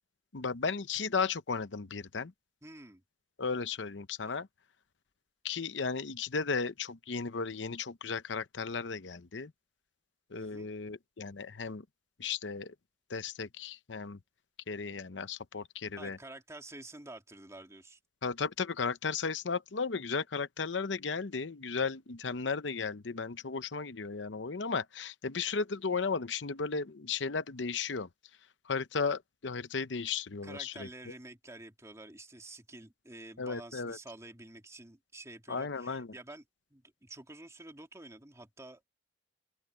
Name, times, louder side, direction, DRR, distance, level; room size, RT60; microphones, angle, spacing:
voice 1, 0.3-2.3 3.4-4.5 5.4-9.5 10.3-11.8 12.2-12.7 13.1-14.2 14.7-16.2 18.2-28.1 28.7-30.9 33.4-34.0 35.5-36.1, left 5 dB, 75° left, 0.8 m, -35 dB
voice 2, 2.6-3.0 4.2-4.4 10.3-10.7 16.0-18.0 30.4-36.4 36.7-38.8, right 2 dB, 15° right, 2.8 m, -49 dB
open air
head